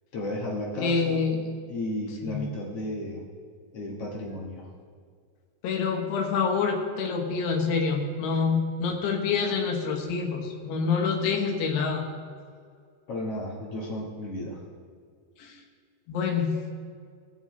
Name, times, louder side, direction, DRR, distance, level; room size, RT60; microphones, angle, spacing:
voice 1, 0.1-1.2 1.7-3.2 3.7-4.7 13.1-14.6, left 1 dB, 55° left, -4 dB, 1.8 m, -33 dB
voice 2, 0.8-1.5 2.2-2.5 5.6-12.0 15.4-15.6 16.1-16.6, left 5 dB, 75° left, 1 dB, 3.3 m, -27 dB
20.5 x 7.5 x 3.2 m, 2.1 s
omnidirectional pair, 4.9 m